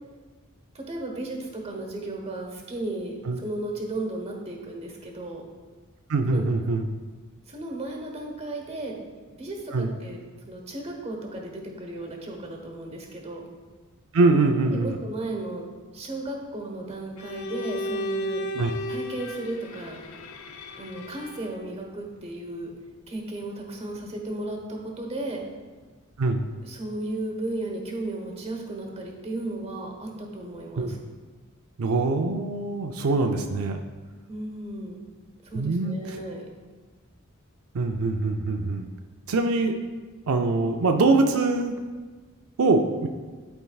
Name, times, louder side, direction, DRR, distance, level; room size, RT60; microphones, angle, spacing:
voice 1, 0.7-5.4 6.3-6.5 7.5-9.0 9.3-10.2 10.5-13.4 14.6-18.4 18.9-20.0 20.8-22.7 23.1-25.4 26.6-31.0 34.3-35.0 35.4-36.5, right 2 dB, 30° right, 1 dB, 1.1 m, -35 dB
voice 2, 6.1-6.8 9.7-9.9 14.1-15.0 18.5-18.7 26.2-26.4 30.8-31.0 31.8-33.8 35.5-35.9 37.7-38.9 39.3-39.7 40.3-41.8 42.6-43.1, right 3 dB, 85° right, 4 dB, 0.5 m, -23 dB
Bowed string instrument, 17.2-21.7, equal, 85° left, 0.5 m, -34 dB
11.5 x 4.5 x 2.3 m, 1.4 s
head